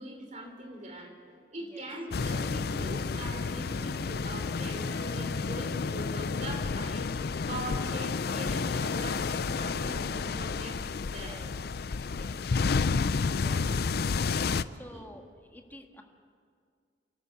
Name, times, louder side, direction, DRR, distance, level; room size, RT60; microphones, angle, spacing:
voice 1, 0.0-7.1 7.5-11.4 13.3-13.8 14.9-15.0, right 1 dB, 40° right, 3 dB, 3.5 m, -42 dB
sound 1, 2.1-14.6, left 4 dB, 60° left, 0.5 m, -30 dB
Harp, 4.9-7.3, right 3 dB, 75° right, 3.5 m, -53 dB
voice 2, 11.0-11.5 12.0-12.6 13.3-13.9 14.7-16.0, left 1 dB, 10° left, 3 dB, 1.6 m, -50 dB
28.5 x 12.5 x 8.2 m, 2.1 s
head